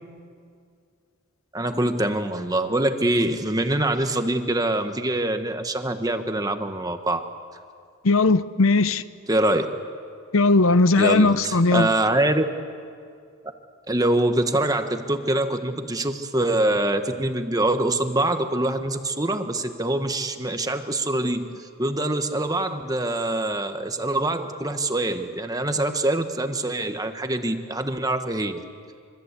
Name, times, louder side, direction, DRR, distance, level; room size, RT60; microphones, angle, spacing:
voice 1, 1.5-7.2 9.3-9.7 11.0-12.5 13.9-21.5 21.8-28.6, right 1 dB, 15° right, 1.3 m, -24 dB
voice 2, 8.0-9.0 10.3-11.9, left 3 dB, 75° left, 0.7 m, -18 dB
26.0 x 24.5 x 8.2 m
head